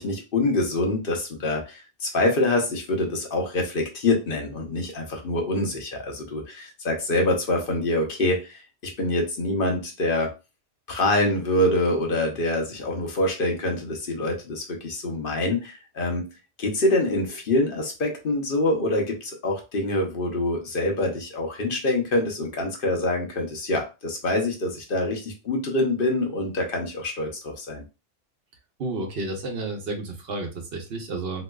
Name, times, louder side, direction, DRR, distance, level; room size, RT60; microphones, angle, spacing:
voice 1, 0.0-10.3 10.9-16.3 16.6-27.8, left 1 dB, 60° left, 2 dB, 1.0 m, -25 dB
voice 2, 28.8-31.4, right 2 dB, 70° right, 3 dB, 1.0 m, -31 dB
3.4 x 3.0 x 2.3 m, 0.29 s
omnidirectional pair, 1.1 m